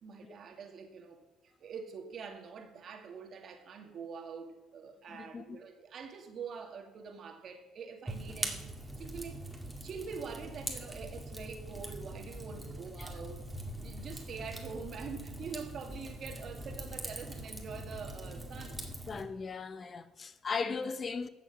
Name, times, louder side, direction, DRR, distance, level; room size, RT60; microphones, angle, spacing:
voice 1, 0.0-9.4 9.8-13.4 13.8-18.8, right 5 dB, 55° right, 1.9 m, -45 dB
voice 2, 5.1-5.6 13.0-13.1 19.1-21.3, left 5 dB, 40° left, 0.7 m, -37 dB
Fire, 8.1-19.2, right 1 dB, 5° right, 2.1 m, -42 dB
12.5 x 7.4 x 5.9 m
supercardioid pair, 70°, 0 cm